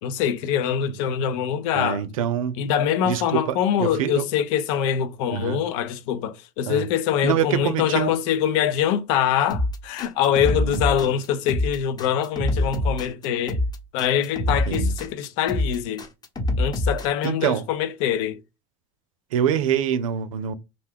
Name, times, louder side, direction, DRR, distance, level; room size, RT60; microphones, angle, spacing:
voice 1, 0.0-2.0 2.6-13.6 13.9-16.1 16.6-18.4, left 9 dB, 70° left, 0.6 m, -24 dB
voice 2, 1.7-2.6 3.0-4.2 5.3-5.6 6.7-6.9 7.2-8.1 10.4-11.2 14.5-14.9 17.2-17.6 19.3-20.5, right 9 dB, 90° right, 0.5 m, -25 dB
sound 1, 9.5-17.3, left 1 dB, 25° left, 0.9 m, -25 dB
2.4 x 2.2 x 3.5 m
hypercardioid pair, 95°, 17 cm